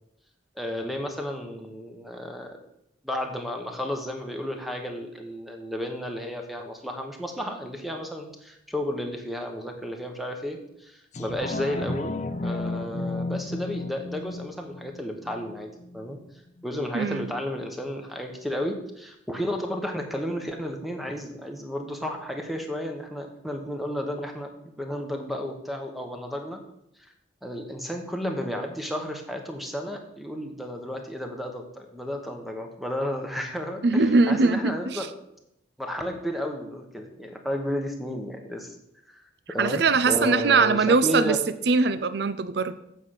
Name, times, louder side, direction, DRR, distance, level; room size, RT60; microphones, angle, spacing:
voice 1, 0.6-2.6 3.0-12.2 12.4-16.2 16.6-26.6 27.0-27.1 27.4-35.1 35.8-38.8 39.1-39.2 39.5-41.4, equal, ahead, 3 dB, 1.1 m, -32 dB
sound 1, 11.1-16.2 16.6-16.7, left 2 dB, 35° left, 0.5 m, -33 dB
voice 2, 16.9-17.3 33.8-35.1 39.6-41.4 41.7-42.7, right 4 dB, 60° right, 13 dB, 0.5 m, -21 dB
8.3 x 5.6 x 6.5 m, 0.79 s
head